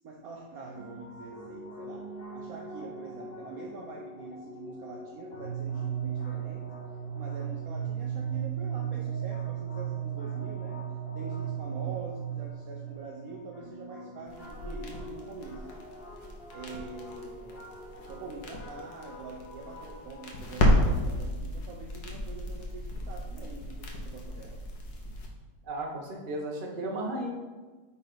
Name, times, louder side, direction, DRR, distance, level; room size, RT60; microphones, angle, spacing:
voice 1, 0.0-6.7 7.2-10.8 11.1-15.7 16.5-17.6 18.0-24.6, right 4 dB, 60° right, -1 dB, 1.1 m, -44 dB
sound 1, 0.7-20.4, right 7 dB, 40° left, 1.3 m, -38 dB
sound 2, 14.3-25.3, left 1 dB, 65° left, 1.6 m, -32 dB
voice 2, 25.6-27.3, right 1 dB, 35° right, -1 dB, 1.1 m, -34 dB
8.9 x 4.2 x 4.0 m, 1.3 s
omnidirectional pair, 1.9 m